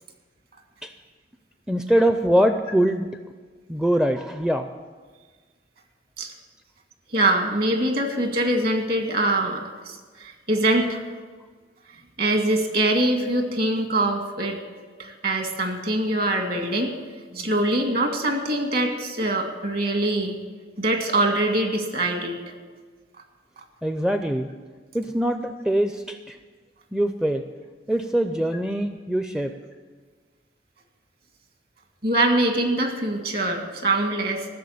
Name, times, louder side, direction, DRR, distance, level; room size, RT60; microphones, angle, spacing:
voice 1, 1.7-3.1 3.7-4.7 23.8-24.5 24.9-26.4 26.9-27.4 27.9-29.5, right 1 dB, 5° right, 7 dB, 0.4 m, -23 dB
voice 2, 7.1-11.0 12.2-14.6 15.0-17.0 17.3-20.4 20.8-22.4 32.0-34.5, right 1 dB, 55° right, 4 dB, 2.0 m, -23 dB
14.5 x 7.0 x 8.5 m, 1.5 s
head